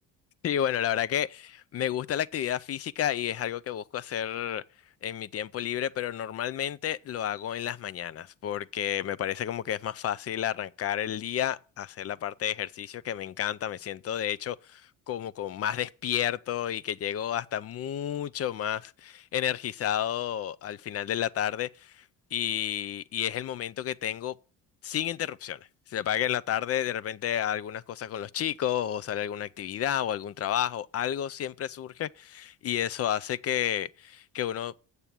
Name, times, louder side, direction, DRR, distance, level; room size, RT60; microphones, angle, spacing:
voice 1, 0.4-4.6 5.0-22.0 22.3-24.4 24.8-25.6 25.9-34.7, left 10 dB, 40° left, 0.5 m, -31 dB
8.1 x 6.9 x 7.4 m
cardioid pair, 95°, 36 cm